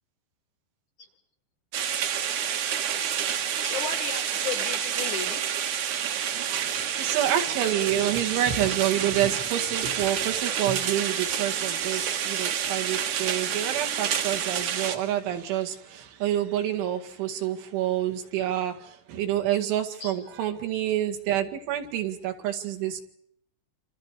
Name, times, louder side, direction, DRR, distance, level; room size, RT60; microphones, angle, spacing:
sound 1, 1.7-15.0, right 9 dB, 60° right, 2.2 m, -29 dB
voice 1, 3.6-5.4 20.0-20.2, left 6 dB, 65° left, 8 dB, 2.0 m, -34 dB
voice 2, 6.5-23.0, right 11 dB, 80° right, 4 dB, 4.5 m, -28 dB
28.0 x 26.5 x 4.8 m, 0.72 s
omnidirectional pair, 5.5 m